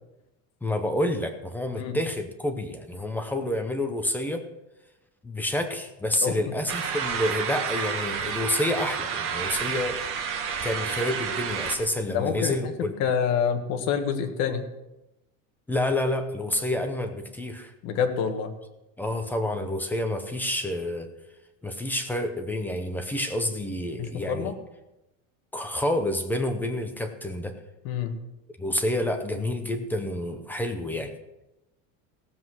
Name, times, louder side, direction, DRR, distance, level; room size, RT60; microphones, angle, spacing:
voice 1, 0.6-4.4 5.2-10.2 10.6-12.9 15.7-17.7 19.0-21.1 21.6-24.5 25.5-27.5 28.6-31.1, left 1 dB, 5° left, 5 dB, 0.7 m, -28 dB
sound 1, 6.7-11.8, right 6 dB, 35° right, 1.5 m, -30 dB
voice 2, 12.1-12.7 13.0-14.6 17.8-18.5 24.0-24.5 27.8-28.2, left 7 dB, 45° left, 5 dB, 1.6 m, -27 dB
16.5 x 7.7 x 6.2 m, 0.95 s
cardioid pair, 175°, 35 cm